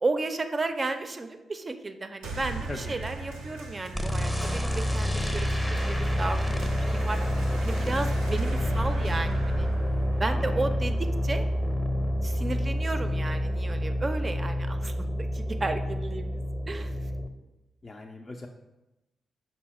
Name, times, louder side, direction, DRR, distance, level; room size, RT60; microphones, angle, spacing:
voice 1, 0.0-7.2 7.6-9.7 10.2-11.5 12.2-16.4 16.7-16.9, right 3 dB, 35° right, 8 dB, 0.4 m, -33 dB
sound 1, 2.2-11.2, right 2 dB, 85° right, 0.5 m, -40 dB
sound 2, 3.9-17.3, equal, 5° left, 0.7 m, -28 dB
voice 2, 10.3-10.6 17.8-18.5, left 2 dB, 40° left, 1 dB, 0.4 m, -40 dB
5.5 x 2.1 x 4.1 m, 0.99 s
hypercardioid pair, 40°, 0 cm